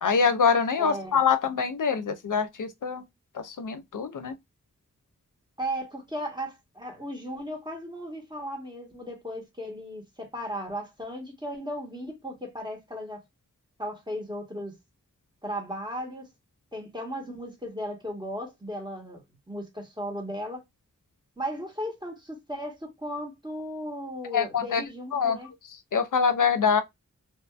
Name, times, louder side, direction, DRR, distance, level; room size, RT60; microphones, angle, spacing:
voice 1, 0.0-3.0 3.3-4.3 24.3-24.8 25.1-25.4 25.9-26.8, left 6 dB, 80° left, 0.5 m, -24 dB
voice 2, 0.8-1.2 5.6-13.2 13.8-14.7 15.4-16.3 16.7-19.2 19.5-20.6 21.4-25.5, equal, 15° right, 1.2 m, -36 dB
2.7 x 2.4 x 2.3 m
wide cardioid pair, 45°, 31 cm